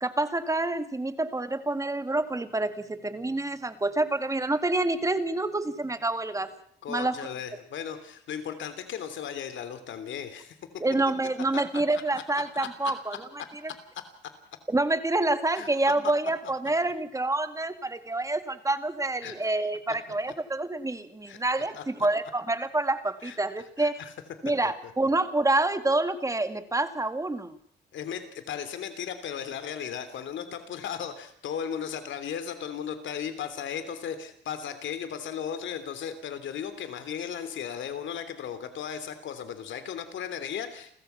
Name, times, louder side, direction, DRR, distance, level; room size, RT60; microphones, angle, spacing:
voice 1, 0.0-6.5 6.9-7.2 10.8-13.2 14.7-24.0 24.4-27.6, right 2 dB, 15° right, 10 dB, 2.1 m, -27 dB
voice 2, 6.8-10.6 11.5-11.6 12.1-12.2 12.5-13.0 15.5-15.7 19.2-19.3 21.3-21.4 21.7-21.8 23.2-23.4 23.8-24.1 24.6-24.9 27.9-40.9, left 8 dB, 70° left, 10 dB, 3.3 m, -36 dB
30.0 x 14.5 x 5.8 m, 0.63 s
cardioid pair, 90°, 20 cm